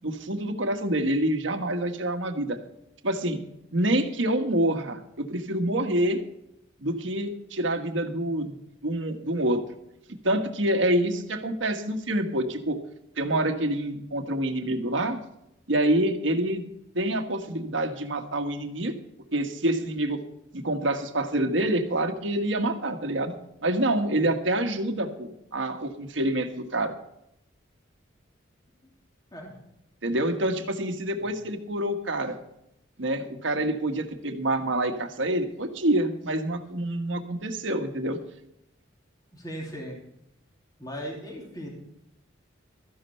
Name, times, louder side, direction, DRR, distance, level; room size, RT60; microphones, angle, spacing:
voice 1, 0.0-2.6 3.0-3.4 3.7-6.2 6.8-8.6 8.8-9.6 10.2-12.8 13.2-15.2 15.7-16.6 16.9-18.9 19.3-20.2 20.5-23.3 23.6-26.9 30.0-32.4 33.0-38.2, right 1 dB, 70° right, 7 dB, 1.4 m, -27 dB
voice 2, 39.3-40.0 40.8-41.7, equal, 20° left, -1 dB, 2.9 m, -37 dB
13.5 x 11.0 x 4.4 m, 0.79 s
head